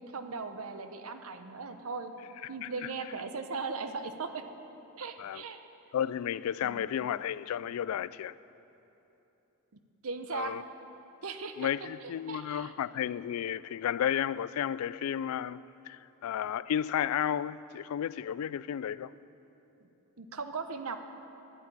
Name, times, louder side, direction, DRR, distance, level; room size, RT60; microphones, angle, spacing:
voice 1, 0.0-2.1 2.5-4.5 5.0-5.6 6.6-6.9 10.0-10.6 11.2-11.7 12.0-12.7 20.2-21.0, right 4 dB, 75° right, 0.8 m, -38 dB
voice 2, 5.9-8.4 10.3-10.6 11.6-19.1, left 9 dB, 80° left, 0.3 m, -32 dB
10.0 x 8.5 x 9.6 m
head